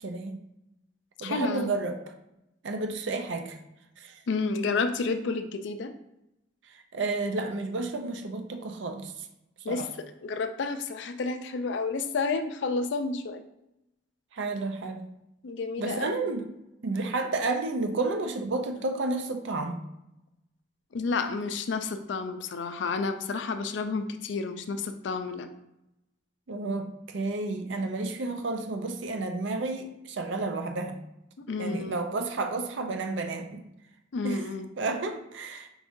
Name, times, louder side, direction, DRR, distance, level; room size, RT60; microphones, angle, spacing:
voice 1, 0.0-0.4 1.2-2.0 2.6-3.6 4.0-4.2 6.7-9.3 9.7-9.9 14.3-15.1 15.8-16.5 16.8-19.8 26.5-31.0 31.6-33.6 34.2-34.4 34.8-35.7, right 3 dB, 70° right, 6 dB, 0.5 m, -31 dB
voice 2, 1.2-1.7 4.3-5.9 9.6-9.9 10.2-13.4 15.4-16.2 20.9-25.5 31.4-32.1 34.1-34.7, left 4 dB, 65° left, 8 dB, 0.4 m, -30 dB
4.7 x 2.6 x 3.6 m, 0.86 s
head